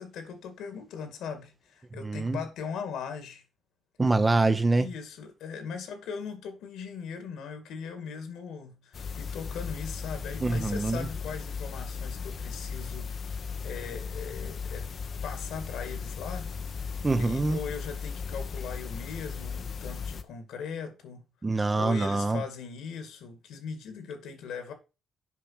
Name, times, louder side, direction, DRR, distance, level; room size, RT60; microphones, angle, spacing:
voice 1, 0.0-3.4 4.8-14.9 15.2-16.5 17.1-21.2 21.7-24.7, left 6 dB, 85° left, 2.3 m, -39 dB
voice 2, 2.0-2.4 4.0-4.9 10.4-11.1 17.0-17.6 21.4-22.4, right 3 dB, 20° right, 1.0 m, -25 dB
sound 1, 8.9-20.2, left 5 dB, 50° left, 0.8 m, -36 dB
7.5 x 5.4 x 5.7 m
cardioid pair, 90°, 0 cm